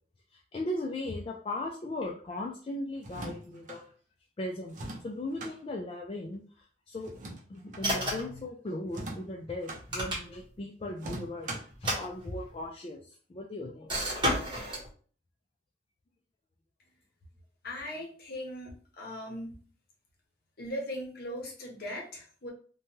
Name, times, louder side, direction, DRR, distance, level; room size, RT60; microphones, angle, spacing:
voice 1, 0.3-3.8 4.4-4.8 5.0-7.1 7.5-14.0, left 1 dB, 30° left, 0 dB, 0.3 m, -38 dB
sound 1, 3.0-3.8 4.7-5.6 7.0-7.9 8.9-9.8 11.0-11.8, right 1 dB, 45° right, 0.6 m, -41 dB
sound 2, 7.8-8.4 9.7-10.6 11.7-12.7 13.9-14.9, equal, 25° right, 1.1 m, -32 dB
voice 2, 17.6-19.6 20.6-22.5, equal, 55° left, 0 dB, 0.8 m, -39 dB
3.0 x 2.2 x 2.8 m, 0.43 s
head